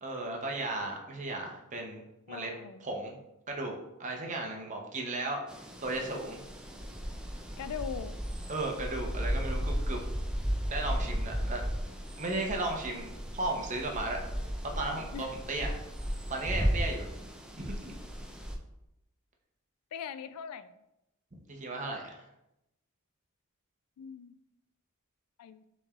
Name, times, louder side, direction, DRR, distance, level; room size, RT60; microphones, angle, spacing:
voice 1, 0.0-2.5 2.8-3.2 3.5-3.7 4.0-5.4 5.8-6.4 8.5-10.0 10.7-11.6 12.2-14.2 14.7-15.8 16.3-17.0 17.6-17.9 21.5-22.2, right 2 dB, 35° right, 1 dB, 0.7 m, -35 dB
voice 2, 2.3-2.9 7.6-8.2 15.1-15.3 19.9-20.8 24.0-24.4 25.4-25.6, left 7 dB, 85° left, 14 dB, 0.3 m, -41 dB
sound 1, 5.5-18.6, equal, 5° right, 0.3 m, -35 dB
6.4 x 3.1 x 2.4 m, 0.88 s
head